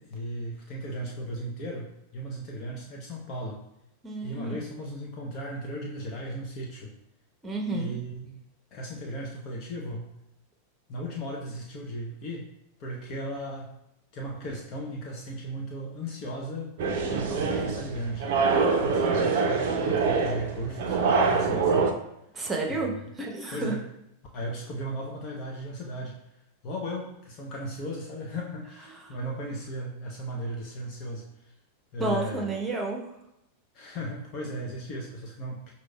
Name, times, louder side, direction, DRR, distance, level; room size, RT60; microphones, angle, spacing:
voice 1, 0.0-3.6 4.2-7.0 7.7-8.4 8.7-10.1 10.9-12.5 12.8-13.8 14.1-16.7 17.1-18.4 18.8-22.0 22.7-23.0 23.5-23.8 24.3-26.2 26.6-31.5 31.9-32.5 33.7-35.7, equal, 40° left, -1 dB, 0.6 m, -36 dB
voice 2, 4.0-4.6 7.4-7.9 22.3-23.7 29.1-29.2 32.0-33.1, right 3 dB, 15° right, 1 dB, 0.9 m, -31 dB
sound 1, 16.8-21.9, right 4 dB, 50° right, 0.5 m, -25 dB
6.0 x 2.7 x 2.2 m, 0.83 s
figure-of-eight pair, 90°, 0 cm